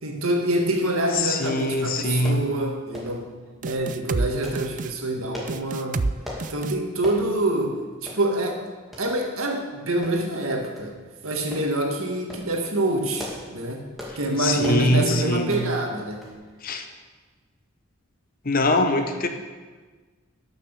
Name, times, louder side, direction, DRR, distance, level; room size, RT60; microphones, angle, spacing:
voice 1, 0.0-3.3 3.6-6.1 6.5-7.8 8.0-8.6 9.0-10.9 11.2-13.8 14.2-16.3, right 1 dB, 85° right, 2 dB, 1.9 m, -26 dB
voice 2, 1.1-2.5 14.4-15.6 16.6-16.8 18.4-19.3, left 1 dB, 45° left, 6 dB, 1.0 m, -23 dB
sound 1, 1.5-1.7 2.2-2.5 2.9-3.2 3.6-3.9 4.4-4.6 5.3-5.6 6.2-6.5 7.0-7.2 7.6-7.7 8.1-8.2 8.9-9.1 10.0-10.4 10.8-10.9 11.5-11.7 12.1-12.5 13.0-13.5 14.0-14.2 14.6-14.9 15.5-15.7 16.2-16.4 16.7-16.8, left 1 dB, ahead, 2.3 m, -37 dB
sound 2, 3.6-4.3 4.5-4.9 5.5-6.1 6.4-6.8, right 3 dB, 40° right, 0.4 m, -27 dB
12.0 x 6.6 x 6.8 m, 1.4 s
head